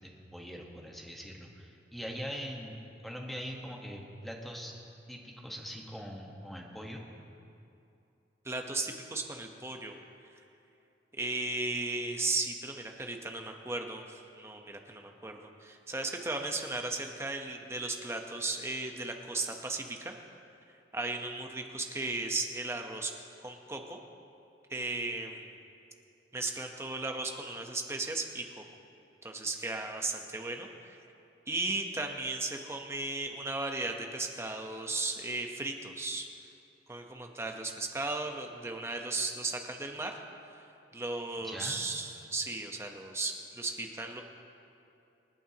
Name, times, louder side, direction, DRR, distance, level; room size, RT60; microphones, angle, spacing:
voice 1, 0.0-2.8 3.0-4.7 5.1-7.0 41.4-41.8, equal, ahead, -1 dB, 1.2 m, -42 dB
voice 2, 8.4-10.0 10.3-10.4 11.1-20.2 20.9-23.1 23.4-24.0 24.7-25.5 26.3-28.6 29.2-31.0 31.5-36.3 36.9-40.2 40.9-44.2, right 2 dB, 15° right, 3 dB, 0.9 m, -36 dB
27.0 x 9.0 x 2.9 m, 2.7 s
head